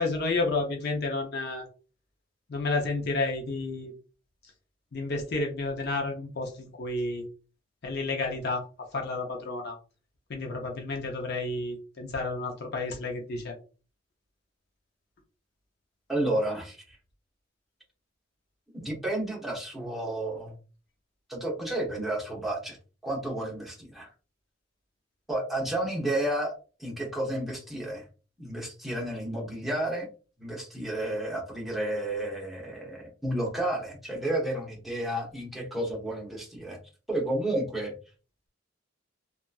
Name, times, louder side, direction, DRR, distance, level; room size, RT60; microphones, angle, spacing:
voice 1, 0.0-1.6 2.5-3.9 4.9-7.2 7.8-9.8 10.3-13.5, left 3 dB, 55° left, 1 dB, 0.6 m, -31 dB
voice 2, 16.1-16.8 18.7-20.5 21.3-22.8 23.0-24.1 25.3-26.5 26.8-28.0 28.4-30.1 30.4-36.8 37.1-37.9, right 1 dB, ahead, -4 dB, 0.9 m, -31 dB
2.8 x 2.4 x 2.3 m, 0.35 s
head